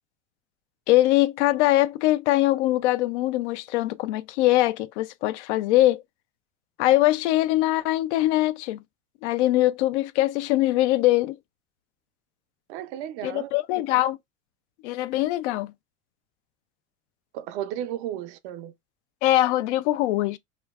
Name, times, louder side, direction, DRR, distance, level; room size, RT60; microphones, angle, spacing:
voice 1, 0.9-6.0 6.8-8.8 9.2-11.3 13.2-14.2 14.8-15.7 19.2-20.4, left 16 dB, 85° left, 0.5 m, -22 dB
voice 2, 12.7-13.5 17.3-18.7, right 11 dB, 75° right, 0.6 m, -34 dB
4.9 x 2.2 x 2.3 m
supercardioid pair, 95°, 34 cm